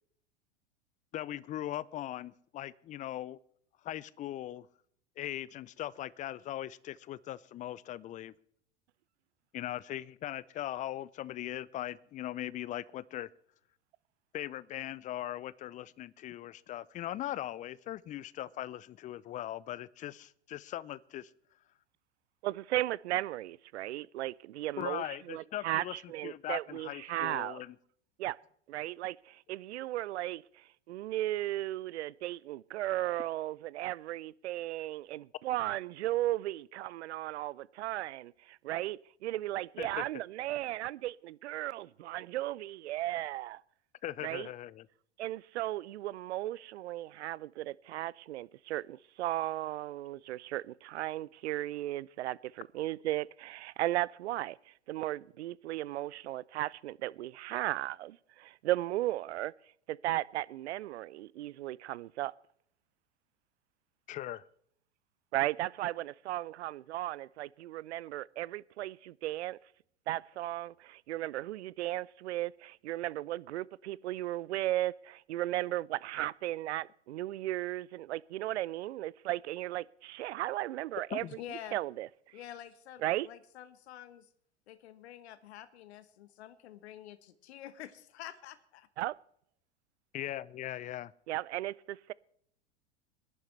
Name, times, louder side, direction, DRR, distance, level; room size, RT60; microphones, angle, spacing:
voice 1, 1.1-3.4 3.8-4.7 5.2-8.3 9.5-13.3 14.3-21.3 24.8-27.8 39.8-40.0 44.0-44.9 64.1-64.4 81.1-81.3 90.1-91.1, left 13 dB, 25° left, 0.4 m, -40 dB
voice 2, 22.4-27.6 28.2-28.4 28.7-43.6 44.2-44.5 45.2-54.6 54.9-59.5 59.9-62.3 65.3-69.6 70.1-82.1 83.0-83.3 89.0-89.2 91.3-92.1, right 15 dB, 75° right, 0.5 m, -36 dB
voice 3, 81.4-81.8 82.3-84.3 84.7-88.9, left 11 dB, 70° left, 1.1 m, -48 dB
25.5 x 11.0 x 3.2 m
hypercardioid pair, 90°, 34 cm